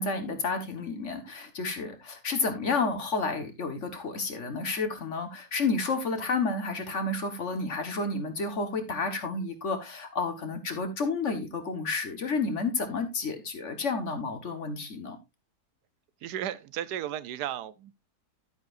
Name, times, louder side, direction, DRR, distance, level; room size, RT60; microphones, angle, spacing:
voice 1, 0.0-15.2, left 3 dB, 50° left, 1.7 m, -31 dB
voice 2, 16.2-18.0, right 11 dB, 90° right, 1.3 m, -34 dB
10.5 x 9.0 x 2.5 m
omnidirectional pair, 1.7 m